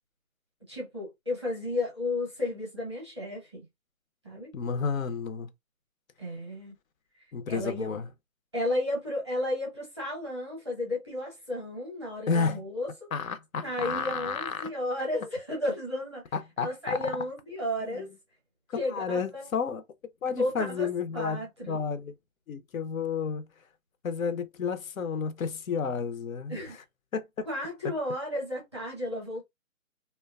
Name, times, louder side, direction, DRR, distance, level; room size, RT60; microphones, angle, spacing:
voice 1, 0.7-3.6 4.2-4.5 6.2-6.7 7.5-7.9 8.5-12.9 13.6-16.3 16.6-18.1 18.8-19.5 20.3-20.9 21.1-21.8 26.5-26.8 27.5-29.4, left 1 dB, 20° right, 0.6 m, -33 dB
voice 2, 4.5-5.5 7.3-8.1 12.3-12.6 13.1-14.7 16.3-17.0 17.9-18.1 18.7-19.8 20.2-21.4 21.7-22.1 22.5-23.5 24.0-26.5 27.1-27.5, left 5 dB, 70° left, 0.6 m, -31 dB
2.8 x 2.2 x 2.2 m
hypercardioid pair, 170°, 42 cm